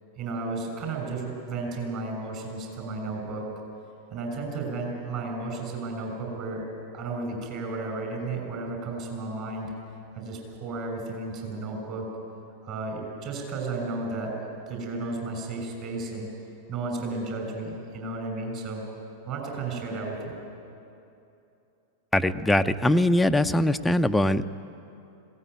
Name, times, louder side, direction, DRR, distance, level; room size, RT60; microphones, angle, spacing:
voice 1, 0.2-3.5 4.1-6.6 6.9-9.7 10.1-12.1 12.6-14.3 14.7-16.3 16.7-18.8 19.3-20.4, right 3 dB, 40° right, 2 dB, 6.3 m, -33 dB
voice 2, 22.1-24.4, left 1 dB, 5° left, 8 dB, 0.6 m, -22 dB
20.5 x 17.5 x 9.4 m, 2.8 s
figure-of-eight pair, 90°, 0 cm